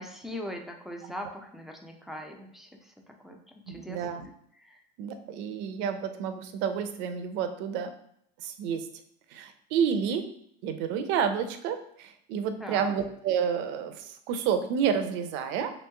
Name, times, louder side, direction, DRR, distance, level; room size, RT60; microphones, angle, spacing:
voice 1, 0.0-3.4 3.7-4.8 12.6-13.0, equal, ahead, 2 dB, 0.4 m, -41 dB
voice 2, 3.7-4.2 5.0-7.9 8.4-8.9 9.3-10.3 10.6-15.7, right 7 dB, 60° right, 8 dB, 0.5 m, -30 dB
3.0 x 3.0 x 3.3 m, 0.70 s
supercardioid pair, 120°, 21 cm